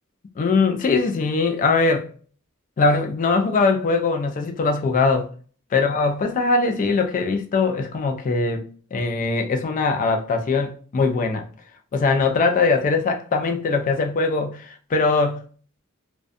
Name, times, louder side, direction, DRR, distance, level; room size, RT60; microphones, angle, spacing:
voice 1, 0.4-2.1 2.8-5.3 5.7-11.4 11.9-15.4, left 4 dB, 35° left, 0.3 m, -21 dB
2.4 x 2.2 x 2.5 m
head